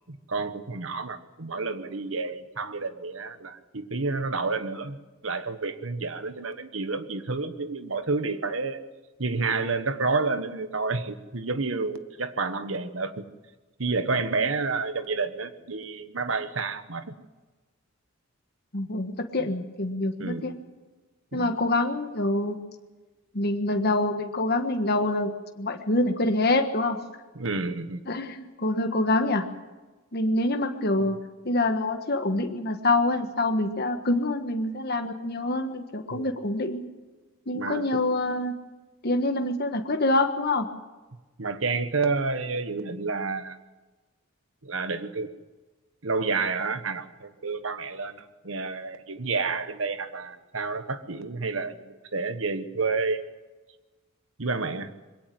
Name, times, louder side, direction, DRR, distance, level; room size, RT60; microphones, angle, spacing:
voice 1, 0.0-8.8 9.2-13.2 13.8-17.1 19.4-19.5 20.2-20.4 21.3-21.6 27.3-28.0 36.1-36.3 37.5-38.0 41.4-43.6 44.6-45.3 46.0-53.2 54.4-54.9, right 4 dB, 65° right, 10 dB, 1.4 m, -30 dB
voice 2, 18.7-20.5 21.3-22.6 23.3-25.3 25.6-27.0 28.1-29.4 30.1-31.2 31.4-36.8 37.5-38.5 39.0-40.7, left 2 dB, 50° left, 5 dB, 1.5 m, -26 dB
22.0 x 17.5 x 7.8 m, 1.2 s
head